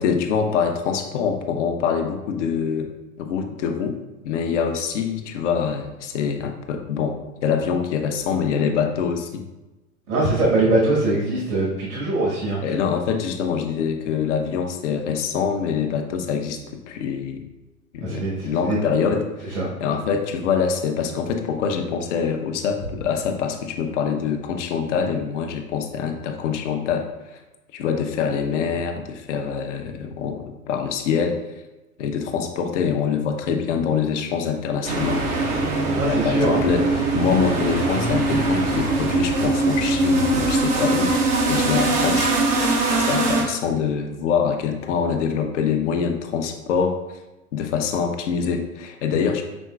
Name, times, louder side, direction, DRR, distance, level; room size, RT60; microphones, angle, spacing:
voice 1, 0.0-2.9 3.2-4.0 4.2-9.5 12.6-17.4 17.9-27.4 27.7-31.4 32.0-35.2 36.0-42.3 42.9-47.0 47.5-49.4, left 6 dB, 55° left, 4 dB, 0.8 m, -24 dB
voice 2, 10.1-12.6 18.0-18.8 19.5-19.7 36.0-36.6, right 2 dB, 70° right, -5 dB, 1.5 m, -22 dB
sound 1, 34.8-43.4, right 2 dB, 15° right, 0.5 m, -21 dB
6.2 x 3.6 x 2.3 m, 1.0 s
figure-of-eight pair, 105°, 44 cm